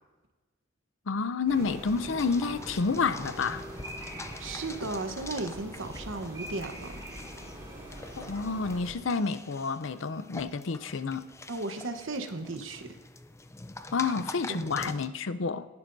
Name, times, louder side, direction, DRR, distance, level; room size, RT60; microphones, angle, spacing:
voice 1, 1.1-3.6 8.3-11.2 13.9-15.7, left 4 dB, 75° left, 13 dB, 0.6 m, -29 dB
sound 1, 1.5-8.9, equal, 20° right, 3.2 m, -43 dB
sound 2, 1.6-15.1, left 2 dB, 15° left, 0.5 m, -46 dB
voice 2, 4.4-7.0 11.5-13.0 14.0-14.1 14.5-14.9, right 2 dB, 85° right, 7 dB, 1.1 m, -36 dB
18.5 x 11.0 x 2.7 m, 1.2 s
head